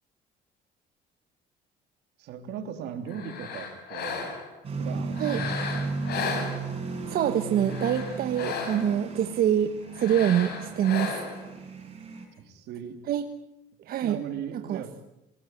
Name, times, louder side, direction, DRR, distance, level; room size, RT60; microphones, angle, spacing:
voice 1, 2.2-4.3 4.7-5.9 12.4-13.0 14.0-14.9, right 8 dB, 80° right, 8 dB, 3.2 m, -38 dB
sound 1, 3.1-4.6 5.1-7.0 7.5-9.0 9.9-11.5, left 5 dB, 70° left, 6.9 m, -35 dB
sound 2, 4.6-12.3, right 3 dB, 35° right, 7.3 m, -35 dB
voice 2, 7.1-11.2 13.1-13.3 13.9-14.2 14.7-14.8, right 10 dB, 60° right, 8 dB, 1.3 m, -25 dB
27.0 x 18.0 x 9.4 m, 0.87 s
cardioid pair, 110°, 17 cm